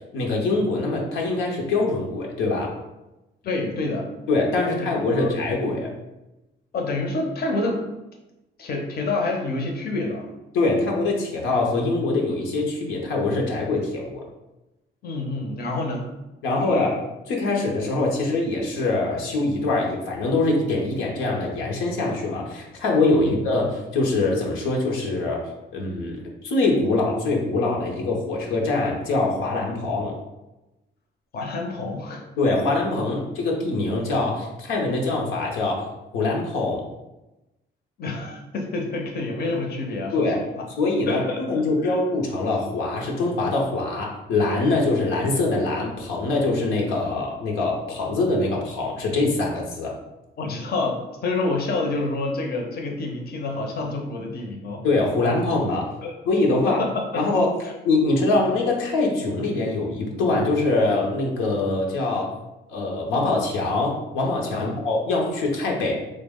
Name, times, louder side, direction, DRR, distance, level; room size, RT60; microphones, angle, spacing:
voice 1, 0.1-2.7 4.3-5.9 10.5-14.2 16.4-16.9 17.3-30.1 32.4-35.9 36.1-36.8 40.1-40.4 40.8-49.9 54.8-55.9 56.3-56.8 57.1-57.5 57.8-62.3 62.7-66.0, left 2 dB, 90° left, -1 dB, 0.7 m, -23 dB
voice 2, 3.4-4.1 4.6-5.3 6.7-7.8 8.6-10.3 15.0-16.1 16.6-17.0 23.2-23.4 31.3-32.2 33.1-33.2 38.0-40.7 41.1-42.0 50.4-54.8 56.0-56.1 56.6-57.2 64.5-64.7, left 2 dB, 50° left, 2 dB, 0.6 m, -28 dB
3.3 x 2.1 x 3.5 m, 0.99 s
cardioid pair, 90°, 20 cm